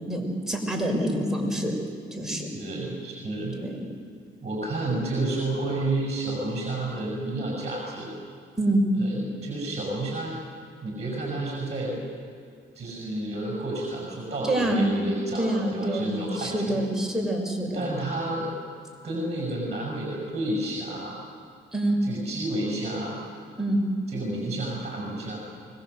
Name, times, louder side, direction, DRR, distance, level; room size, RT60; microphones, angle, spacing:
voice 1, 0.0-1.8 2.1-2.5 3.5-3.8 8.6-8.8 14.4-15.1 15.3-17.9 21.7-22.0 23.6-23.8, right 1 dB, ahead, -1 dB, 6.2 m, -26 dB
voice 2, 2.5-3.6 4.4-8.1 9.0-10.3 10.8-12.0 12.8-16.8 17.7-18.5 19.0-21.2 22.0-23.2 24.1-25.4, right 2 dB, 35° right, -2 dB, 6.9 m, -30 dB
24.5 x 21.5 x 8.1 m, 2.2 s
cardioid pair, 90°, 20 cm